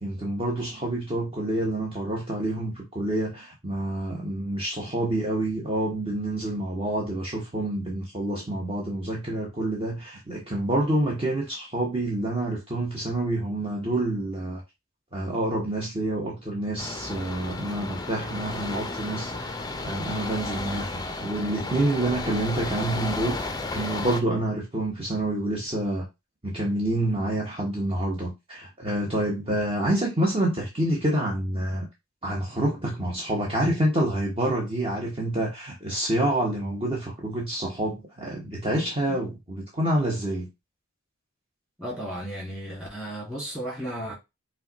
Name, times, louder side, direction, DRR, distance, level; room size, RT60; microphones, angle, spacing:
voice 1, 0.0-14.6 15.1-26.1 26.4-31.9 32.2-40.5, right 1 dB, 25° right, 1.0 m, -28 dB
sound 1, 16.8-24.2, left 2 dB, 20° left, 0.5 m, -33 dB
voice 2, 41.8-44.1, equal, 5° right, 2.2 m, -34 dB
5.4 x 2.3 x 4.0 m
head